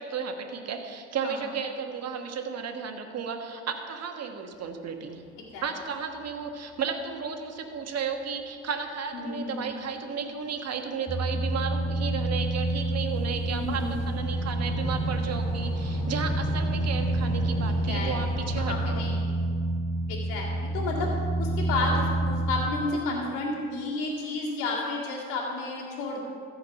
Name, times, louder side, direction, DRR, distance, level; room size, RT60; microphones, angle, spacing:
voice 1, 0.0-5.2 5.6-19.0, right 6 dB, 55° right, 5 dB, 1.4 m, -33 dB
sound 1, 5.6-5.7 5.9-6.6 7.0-7.1 7.8-7.9 8.6-9.1 9.7-9.8 10.1-18.9, left 2 dB, 50° left, 1.2 m, -37 dB
voice 2, 9.1-9.8 13.5-14.0 17.7-18.1 18.4-19.4 20.1-21.1 21.4-26.2, left 2 dB, 75° left, -9 dB, 2.2 m, -32 dB
sound 2, 11.1-22.7, right 2 dB, 20° right, 3.2 m, -28 dB
14.5 x 4.8 x 7.0 m, 2.2 s
hypercardioid pair, 60°, 31 cm